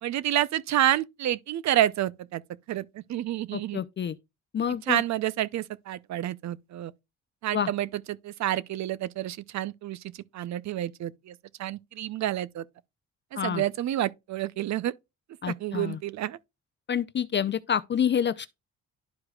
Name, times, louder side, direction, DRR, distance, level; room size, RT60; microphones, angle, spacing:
voice 1, 0.0-2.4 2.7-3.8 4.9-6.9 7.4-12.6 13.4-14.9 15.5-16.4, right 13 dB, 65° right, 0.6 m, -29 dB
voice 2, 3.5-4.2 4.5-5.0 7.5-7.7 13.4-13.6 15.4-16.0 16.9-18.5, left 8 dB, 40° left, 0.5 m, -28 dB
11.5 x 4.8 x 2.3 m
cardioid pair, 90°, 30 cm